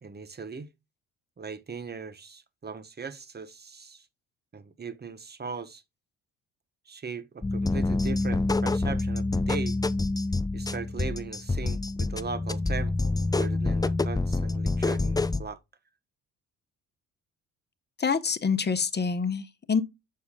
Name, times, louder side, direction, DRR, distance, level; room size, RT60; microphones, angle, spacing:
voice 1, 0.0-0.7 1.4-4.0 4.5-5.8 6.9-9.8 10.5-15.6, right 5 dB, 25° right, 1.1 m, -39 dB
sound 1, 7.4-15.4, left 2 dB, 10° left, 0.5 m, -27 dB
voice 2, 18.0-19.8, left 5 dB, 25° left, 1.2 m, -26 dB
6.8 x 6.6 x 2.4 m
hypercardioid pair, 55°, 38 cm